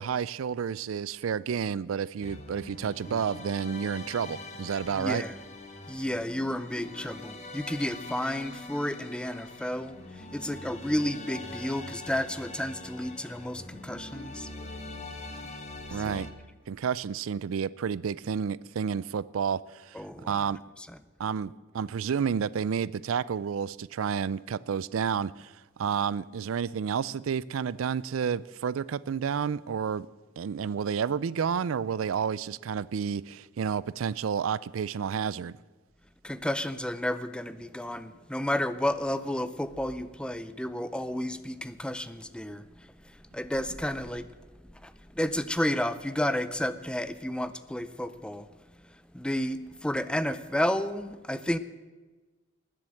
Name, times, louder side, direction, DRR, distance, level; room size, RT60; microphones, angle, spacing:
voice 1, 0.0-5.2 15.9-16.3 16.7-20.6 21.2-30.1 30.4-35.5, right 7 dB, 85° right, 0.4 m, -30 dB
sound 1, 2.2-16.3, left 2 dB, 35° left, 1.4 m, -43 dB
voice 2, 4.9-5.3 5.9-14.5 15.9-16.2 19.9-20.5 20.9-21.0 36.2-44.3 44.7-48.5 49.1-51.6, left 1 dB, 5° left, 0.6 m, -32 dB
19.5 x 7.7 x 7.6 m
head